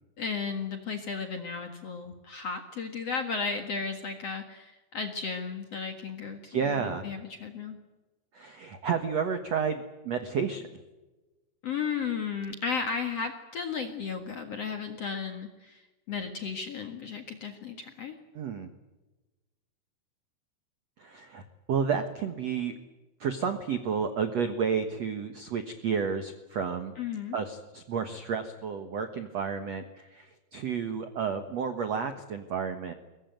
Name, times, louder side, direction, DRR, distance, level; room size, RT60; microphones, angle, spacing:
voice 1, 0.2-7.8 11.6-18.1 27.0-27.4, left 5 dB, 50° left, 6 dB, 2.1 m, -34 dB
voice 2, 6.5-7.0 8.3-10.6 18.3-18.7 21.0-22.7 23.2-26.9 27.3-32.9, right 6 dB, 65° right, 8 dB, 1.6 m, -31 dB
23.0 x 20.0 x 9.2 m, 1.1 s
omnidirectional pair, 5.0 m